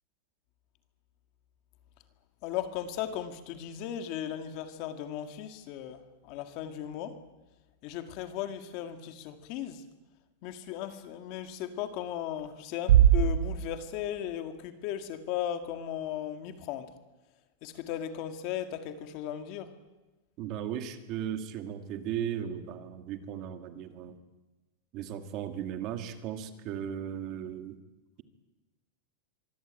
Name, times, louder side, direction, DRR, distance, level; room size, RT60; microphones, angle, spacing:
voice 1, 2.4-7.2 7.8-9.8 10.4-16.9 17.6-19.8, left 10 dB, 35° left, 1.9 m, -36 dB
Bass drum, 12.9-14.6, right 10 dB, 75° right, 2.8 m, -23 dB
voice 2, 20.4-24.2 24.9-27.8, right 9 dB, 30° right, 1.8 m, -36 dB
24.5 x 23.5 x 8.9 m
supercardioid pair, 180°, 0 cm